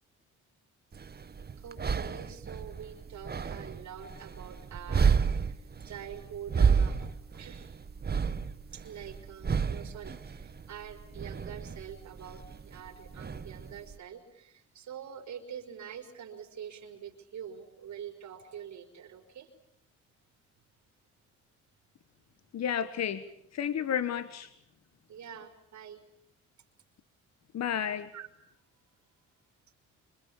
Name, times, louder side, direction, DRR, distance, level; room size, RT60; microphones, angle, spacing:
sound 1, 0.9-14.0, right 6 dB, 30° right, 1.5 m, -31 dB
voice 1, 1.6-7.8 8.7-19.5 25.1-26.0 28.1-28.3, right 8 dB, 70° right, 6 dB, 4.7 m, -45 dB
voice 2, 22.5-23.2 23.5-24.5 27.5-28.1, left 9 dB, 60° left, 12 dB, 1.6 m, -31 dB
26.5 x 25.0 x 8.7 m, 0.70 s
cardioid pair, 90°, 30 cm